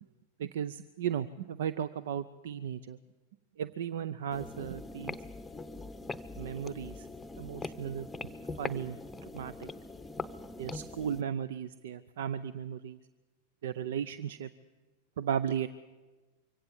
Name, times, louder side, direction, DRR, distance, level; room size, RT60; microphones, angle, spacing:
voice 1, 0.4-3.0 3.6-5.2 6.4-7.1 7.4-8.1 8.6-9.0 9.3-9.7 10.6-13.0 13.6-14.5 15.2-15.7, right 8 dB, 65° right, 16 dB, 0.6 m, -35 dB
sound 1, 4.3-11.2, left 3 dB, 10° left, 0.8 m, -42 dB
24.0 x 16.5 x 7.3 m, 1.3 s
hypercardioid pair, 100°, 0 cm